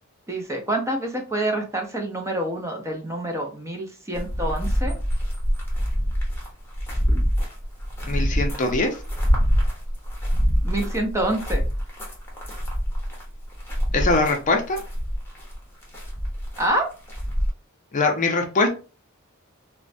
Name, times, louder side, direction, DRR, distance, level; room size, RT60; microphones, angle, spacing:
voice 1, 0.3-4.9 10.6-11.6 16.6-16.9, right 1 dB, 15° right, 2 dB, 0.5 m, -27 dB
sound 1, 4.1-17.5, equal, 10° left, 0.8 m, -25 dB
voice 2, 8.1-8.9 13.9-14.8 17.9-18.7, left 3 dB, 40° left, 4 dB, 0.5 m, -22 dB
3.0 x 2.1 x 2.5 m, 0.34 s
head